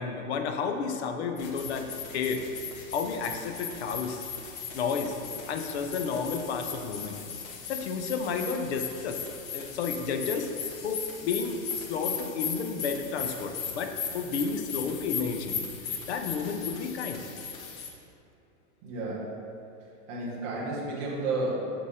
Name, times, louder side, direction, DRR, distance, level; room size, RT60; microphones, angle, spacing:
voice 1, 0.0-2.4 2.9-4.2 4.7-5.1 5.5-7.2 7.7-9.2 9.5-10.5 10.8-15.7 16.1-17.3, left 5 dB, 55° left, 6 dB, 0.6 m, -31 dB
sound 1, 1.4-17.9, left 7 dB, 90° left, 1.1 m, -38 dB
voice 2, 18.8-19.4 20.1-21.5, right 2 dB, 10° right, -6 dB, 0.5 m, -32 dB
6.6 x 5.9 x 3.6 m, 2.6 s
supercardioid pair, 175°, 40 cm